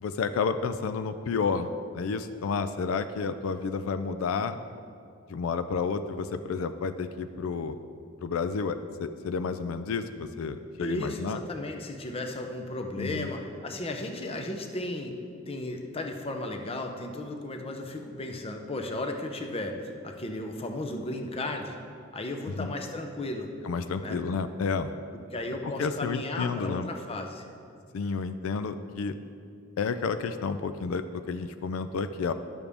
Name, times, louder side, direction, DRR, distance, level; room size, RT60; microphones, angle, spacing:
voice 1, 0.0-4.6 5.3-7.8 8.2-11.4 13.0-13.3 22.6-22.7 23.6-24.9 25.6-26.9 27.9-29.2 29.8-32.3, left 5 dB, 85° left, 10 dB, 0.4 m, -31 dB
voice 2, 10.8-15.2 15.5-19.8 20.0-21.8 22.1-23.5 24.0-24.3 25.3-27.5, left 2 dB, 30° left, 4 dB, 0.7 m, -35 dB
11.0 x 7.0 x 3.5 m, 2.3 s
head